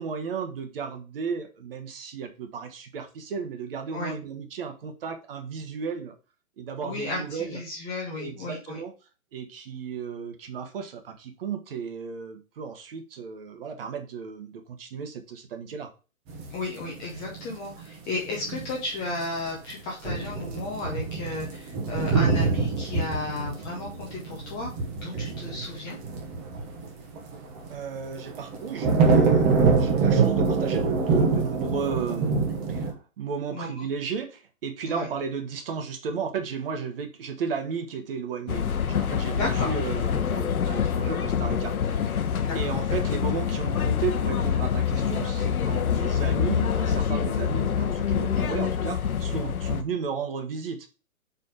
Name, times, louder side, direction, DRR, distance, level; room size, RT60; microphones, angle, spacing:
voice 1, 0.0-6.2 6.6-7.6 8.2-8.9 9.3-15.9 25.1-25.3 27.7-42.2 42.5-50.9, right 6 dB, 40° right, 7 dB, 1.2 m, -34 dB
voice 2, 6.8-8.8 16.5-24.7 25.0-26.0 33.5-33.9 34.9-35.1 39.3-39.7 42.4-42.7, left 2 dB, 10° left, -2 dB, 0.7 m, -34 dB
sound 1, 16.3-17.8 18.2-18.8 19.1-19.2 19.6-19.7 20.0-27.7 28.2-32.9, right 4 dB, 15° right, 1.0 m, -25 dB
sound 2, 38.5-49.8, left 7 dB, 80° left, 1.0 m, -26 dB
5.2 x 4.7 x 4.9 m, 0.33 s
hypercardioid pair, 155°, 42 cm